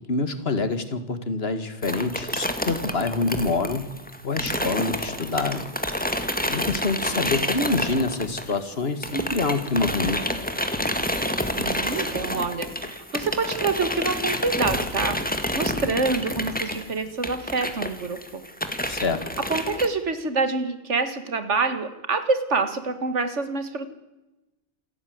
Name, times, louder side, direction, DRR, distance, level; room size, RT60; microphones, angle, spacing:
voice 1, 0.1-3.9 4.2-5.6 6.5-10.2 18.9-19.2, left 3 dB, 60° left, 11 dB, 2.0 m, -26 dB
sound 1, 1.8-8.7 9.0-19.9, left 1 dB, 5° left, 1.7 m, -29 dB
voice 2, 11.5-18.4 19.5-23.9, right 4 dB, 80° right, 11 dB, 2.0 m, -26 dB
27.5 x 11.0 x 9.4 m, 1.0 s
omnidirectional pair, 1.2 m